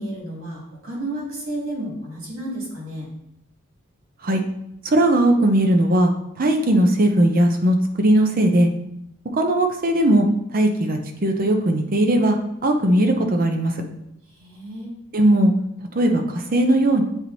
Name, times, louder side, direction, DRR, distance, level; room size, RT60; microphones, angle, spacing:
voice 1, 0.0-3.1 14.3-14.9, right 1 dB, 80° right, -3 dB, 2.4 m, -32 dB
voice 2, 4.8-6.1 6.4-8.7 9.3-10.3 10.5-12.4 12.6-13.7 15.1-15.5 15.9-17.0, right 1 dB, 45° right, 4 dB, 0.7 m, -18 dB
8.0 x 2.9 x 4.0 m, 0.78 s
head